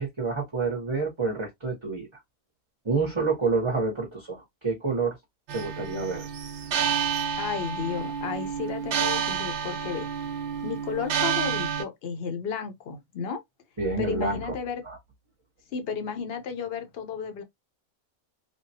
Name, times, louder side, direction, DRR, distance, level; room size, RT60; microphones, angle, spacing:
voice 1, 0.0-2.1 2.8-5.2 5.5-6.3 13.8-14.4 14.8-15.0, right 4 dB, 25° right, 0.7 m, -28 dB
sound 1, 5.5-11.8, right 7 dB, 65° right, 0.8 m, -29 dB
voice 2, 7.4-10.1 10.6-13.4 14.0-14.8 15.7-17.4, left 6 dB, 55° left, 0.9 m, -33 dB
3.4 x 2.1 x 2.7 m
omnidirectional pair, 1.4 m